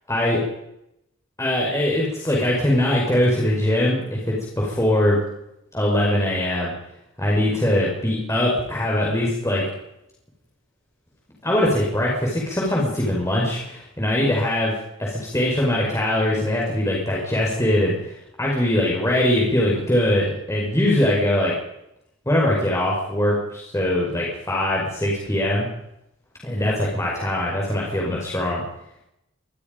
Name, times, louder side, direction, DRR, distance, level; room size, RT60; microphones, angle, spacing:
voice 1, 0.1-0.4 1.4-5.2 5.7-6.7 7.2-9.6 11.4-14.7 15.0-21.5 22.3-25.7 26.4-28.6, left 1 dB, 15° left, -4 dB, 5.4 m, -22 dB
25.0 x 20.5 x 5.3 m, 0.83 s
head